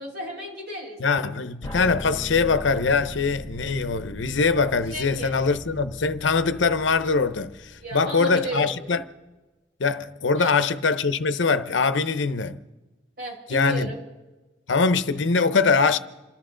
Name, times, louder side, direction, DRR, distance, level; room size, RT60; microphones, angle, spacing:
voice 1, 0.0-1.0 4.9-5.4 7.8-8.7 10.4-10.5 13.2-14.0, right 1 dB, 55° right, 5.7 m, -34 dB
voice 2, 1.0-9.0 9.8-12.6 13.5-13.9 14.7-16.0, left 4 dB, 80° left, 0.8 m, -22 dB
sound 1, 1.6-8.5, left 1 dB, 15° left, 2.4 m, -39 dB
28.0 x 13.5 x 3.9 m
head